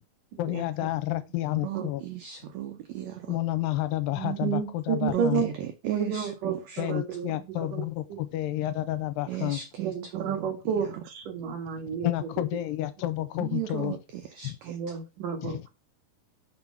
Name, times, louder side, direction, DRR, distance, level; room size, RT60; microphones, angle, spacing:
voice 1, 0.4-2.0 3.3-5.4 6.8-9.6 12.0-13.9 14.4-14.6 15.4-15.6, left 15 dB, 90° left, 2.4 m, -30 dB
voice 2, 1.6-3.4 5.1-6.8 9.3-10.6 13.4-15.0, right 11 dB, 85° right, 1.5 m, -36 dB
voice 3, 4.2-5.5 5.8-7.3 7.6-8.2 9.8-12.1 12.4-12.5 14.6-15.7, right 7 dB, 70° right, 3.0 m, -31 dB
6.1 x 3.9 x 5.7 m
omnidirectional pair, 4.1 m